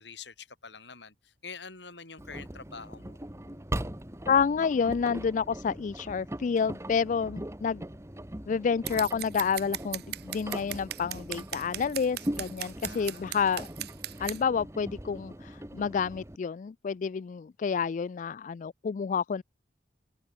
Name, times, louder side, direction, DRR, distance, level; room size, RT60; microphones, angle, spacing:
voice 1, 0.0-3.2 12.8-13.6, left 5 dB, 80° left, 6.8 m, -46 dB
Engine, 2.2-16.4, right 1 dB, 15° right, 1.8 m, -40 dB
voice 2, 4.3-7.8 8.5-13.7 14.2-19.4, left 6 dB, 45° left, 0.3 m, -29 dB
Scissors, 8.9-14.4, right 14 dB, 65° right, 1.0 m, -37 dB
head